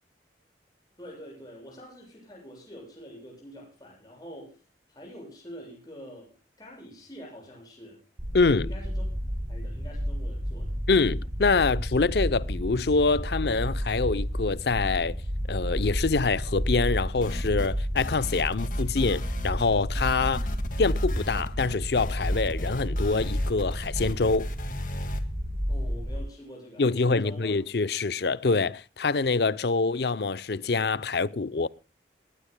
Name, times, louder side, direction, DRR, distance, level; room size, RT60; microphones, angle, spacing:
voice 1, 1.0-4.6 4.9-8.0 8.6-8.9 9.5-10.8 25.7-27.5, equal, 20° left, 7.6 m, -46 dB
sound 1, 8.2-26.2, equal, 40° right, 4.5 m, -31 dB
voice 2, 8.3-8.7 10.9-15.2 15.5-20.5 20.8-24.5 26.8-31.7, left 4 dB, 65° left, 0.6 m, -25 dB
sound 2, 17.2-17.7 18.0-19.7 20.0-25.2, left 1 dB, 45° left, 2.0 m, -37 dB
21.0 x 18.5 x 2.2 m
head